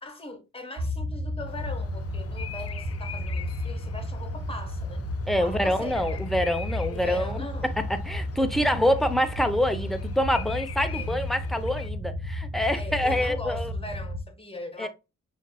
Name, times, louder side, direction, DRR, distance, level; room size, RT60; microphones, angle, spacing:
voice 1, 0.0-5.0 5.4-6.3 6.9-7.9 10.9-11.4 12.7-14.9, left 2 dB, 20° left, 1.2 m, -40 dB
sound 1, 0.8-14.2, left 1 dB, 50° right, 0.8 m, -33 dB
Bird vocalization bird call bird song, 1.5-11.9, left 8 dB, 55° left, 0.5 m, -44 dB
voice 2, 5.3-13.7 14.8-14.9, equal, ahead, 0.6 m, -26 dB
5.8 x 2.6 x 2.2 m
cardioid pair, 60°, 29 cm